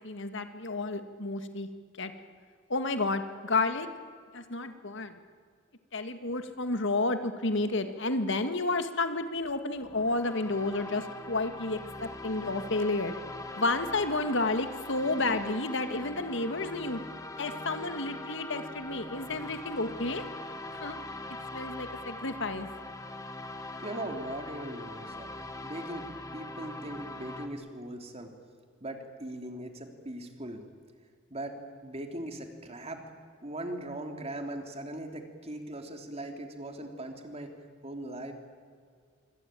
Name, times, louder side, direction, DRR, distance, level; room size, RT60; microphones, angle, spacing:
voice 1, 0.0-1.7 2.0-2.1 2.7-3.9 4.3-5.2 5.9-13.1 13.6-17.0 17.4-20.2 20.8-21.0 21.5-22.7, left 2 dB, 65° left, 9 dB, 1.9 m, -31 dB
sound 1, 9.8-27.5, left 2 dB, 15° left, 2.1 m, -42 dB
voice 2, 23.8-25.3 25.6-28.3 28.8-30.6 31.3-31.6 31.8-33.0 33.4-37.5 37.8-38.3, right 1 dB, 30° right, 5 dB, 3.2 m, -39 dB
26.0 x 24.5 x 9.2 m, 2.1 s
head